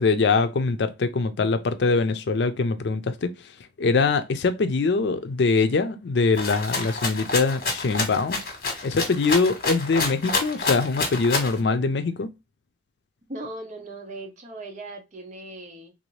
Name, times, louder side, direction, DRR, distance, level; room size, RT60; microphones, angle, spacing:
voice 1, 0.0-3.3 3.8-8.4 8.8-12.3, left 4 dB, 75° left, 0.5 m, -23 dB
Rattle (instrument), 6.4-11.6, left 3 dB, 55° left, 1.3 m, -28 dB
voice 2, 13.3-15.9, right 2 dB, 45° right, 0.8 m, -38 dB
3.5 x 2.6 x 3.0 m
head